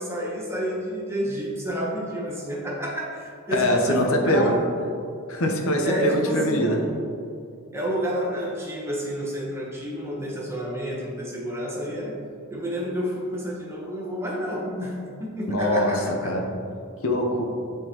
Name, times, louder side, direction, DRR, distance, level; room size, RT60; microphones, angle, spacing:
voice 1, 0.0-4.7 5.8-7.1 7.7-12.2 12.5-16.5, equal, 10° right, -3 dB, 0.9 m, -29 dB
voice 2, 3.5-4.5 5.3-6.8 15.5-16.0 16.2-16.5 17.0-17.4, equal, 70° left, 2 dB, 0.8 m, -23 dB
9.2 x 3.8 x 3.0 m, 2.5 s
head